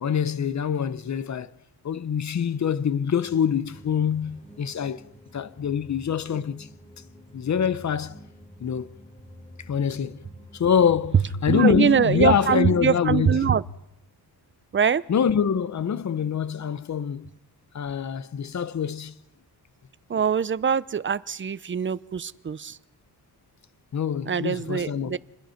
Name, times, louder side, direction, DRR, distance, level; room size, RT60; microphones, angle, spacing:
voice 1, 0.0-1.5 1.8-5.1 5.3-6.7 7.3-8.2 8.6-8.9 9.7-10.2 10.5-11.2 11.4-13.4 15.1-17.3 17.7-19.1 23.9-25.2, left 7 dB, 45° left, 1.1 m, -25 dB
sound 1, 3.1-11.2, equal, 15° left, 3.4 m, -49 dB
voice 2, 11.5-13.6 14.7-15.0 20.1-22.8 24.3-25.2, right 7 dB, 30° right, 0.7 m, -23 dB
28.5 x 21.0 x 5.9 m
cardioid pair, 105°, 40 cm